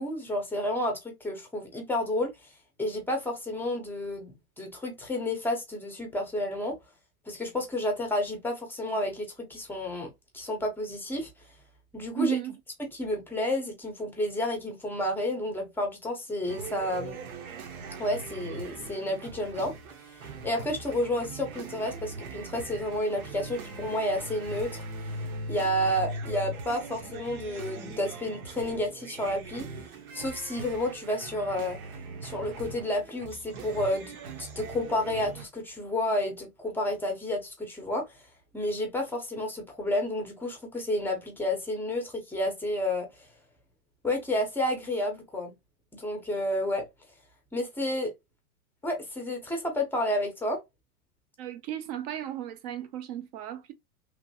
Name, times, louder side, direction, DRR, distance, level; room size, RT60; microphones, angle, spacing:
voice 1, 0.0-2.3 2.8-6.8 7.3-11.3 11.9-12.4 12.9-17.1 18.0-19.7 20.2-24.8 25.5-29.7 30.1-31.8 32.2-38.0 38.5-43.3 44.0-45.5 45.9-46.8 47.5-48.1 48.8-50.6, left 1 dB, 5° left, 0.6 m, -30 dB
voice 2, 12.1-12.6 51.4-53.7, right 11 dB, 30° right, 0.4 m, -34 dB
sound 1, 16.5-35.5, right 2 dB, 75° right, 1.0 m, -40 dB
3.1 x 2.6 x 2.6 m
supercardioid pair, 140°, 43 cm